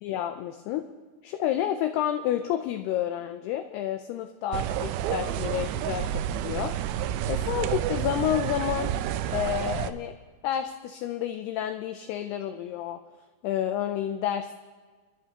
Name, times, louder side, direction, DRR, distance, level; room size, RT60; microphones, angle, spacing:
voice 1, 0.0-0.8 1.2-6.7 7.3-8.9 9.3-10.1 10.4-13.0 13.4-14.6, left 11 dB, 85° left, 7 dB, 2.3 m, -30 dB
sound 1, 4.5-9.9, right 11 dB, 85° right, 2.5 m, -29 dB
27.0 x 11.0 x 2.9 m, 1.4 s
omnidirectional pair, 5.1 m